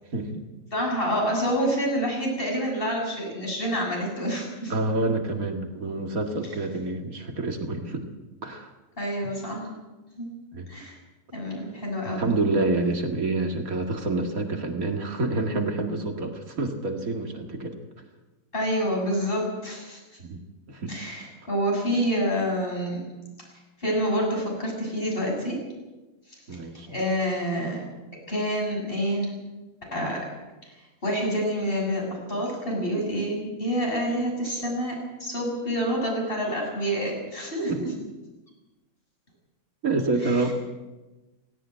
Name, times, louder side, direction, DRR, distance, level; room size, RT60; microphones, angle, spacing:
voice 1, 0.1-0.4 4.7-8.1 8.4-8.7 10.5-10.7 12.0-17.7 20.2-20.4 20.7-20.9 26.5-27.0 37.7-38.0 39.8-40.5, right 2 dB, 80° right, 4 dB, 2.5 m, -27 dB
voice 2, 0.7-4.7 9.0-9.7 10.2-10.3 10.7-10.9 11.3-12.3 18.5-20.0 20.9-23.0 23.8-25.6 26.9-27.9 28.3-29.3 29.9-30.3 31.0-37.9 40.2-40.4, equal, 40° left, -1 dB, 7.5 m, -27 dB
17.0 x 17.0 x 9.1 m, 1.1 s
omnidirectional pair, 1.5 m